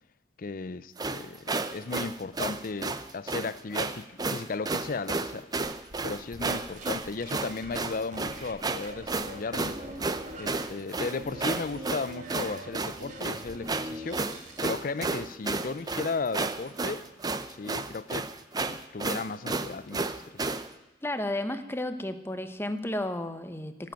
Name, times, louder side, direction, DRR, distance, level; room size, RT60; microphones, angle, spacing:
voice 1, 0.4-5.5 6.0-9.8 10.4-14.2 14.6-17.1 17.5-18.3 18.7-20.5, left 4 dB, 50° left, 0.5 m, -35 dB
sound 1, 1.0-20.7, right 3 dB, 20° right, 0.6 m, -32 dB
sound 2, 5.6-8.6 8.8-10.7 11.0-14.7, right 1 dB, 40° right, 2.2 m, -43 dB
voice 2, 21.0-23.9, left 1 dB, 15° left, 0.9 m, -33 dB
16.5 x 7.7 x 9.1 m
head